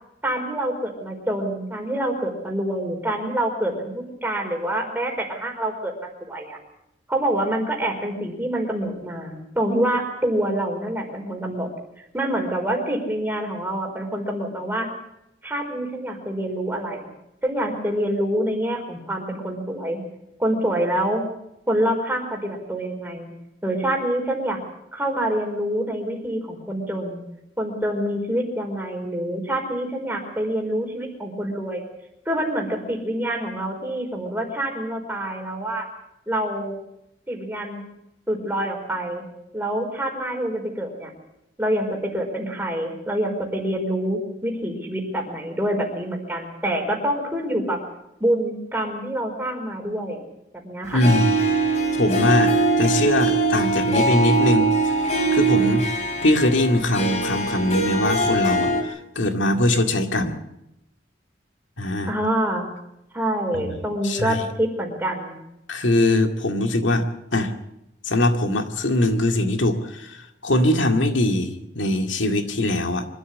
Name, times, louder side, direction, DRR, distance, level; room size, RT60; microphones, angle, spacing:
voice 1, 0.2-6.6 7.1-11.7 12.0-14.9 15.4-17.0 17.4-20.0 20.4-21.2 21.7-23.3 23.6-24.6 24.9-27.2 27.6-31.8 32.2-35.9 36.3-36.7 37.3-37.8 38.3-39.2 39.5-41.1 41.6-47.8 48.2-50.2 50.6-51.0 62.1-62.7 63.1-65.4, right 1 dB, 10° right, 1 dB, 4.6 m, -26 dB
voice 2, 50.9-51.3 51.9-55.8 56.2-60.4 61.8-62.1 63.5-63.8 64.0-64.5 65.7-67.1 67.3-67.5 68.0-73.1, left 1 dB, 85° left, 5 dB, 2.1 m, -22 dB
Harp, 51.0-58.8, right 2 dB, 40° left, 3.3 m, -22 dB
24.5 x 13.0 x 8.5 m, 0.85 s
head